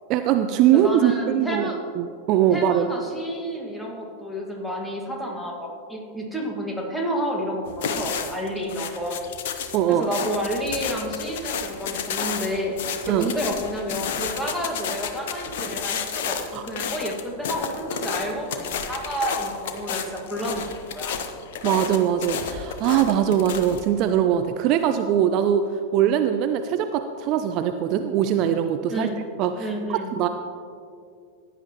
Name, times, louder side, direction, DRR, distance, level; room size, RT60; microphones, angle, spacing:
voice 1, 0.1-1.7 2.0-2.9 9.7-10.1 13.1-13.3 16.5-16.6 21.6-25.6 25.9-29.1 29.4-30.3, right 10 dB, 40° right, 8 dB, 0.5 m, -21 dB
voice 2, 0.7-1.8 2.5-9.2 9.9-12.8 13.1-20.6 20.9-21.2 28.9-29.2 29.6-30.1, equal, 5° left, -1 dB, 1.9 m, -30 dB
sound 1, 7.7-23.9, left 6 dB, 55° left, 0.9 m, -31 dB
16.0 x 9.8 x 3.1 m, 2.3 s
figure-of-eight pair, 90°, 0 cm